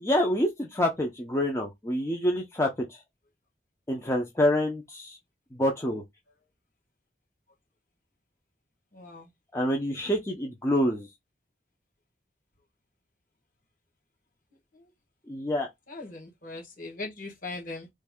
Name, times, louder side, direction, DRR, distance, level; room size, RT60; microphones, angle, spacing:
voice 1, 0.0-3.0 3.9-5.2 5.5-6.0 9.5-11.1 15.3-15.7, left 1 dB, 15° left, 0.6 m, -27 dB
voice 2, 8.9-9.3 14.7-14.9 15.9-17.9, left 3 dB, 50° left, 1.5 m, -40 dB
3.2 x 2.6 x 3.6 m
head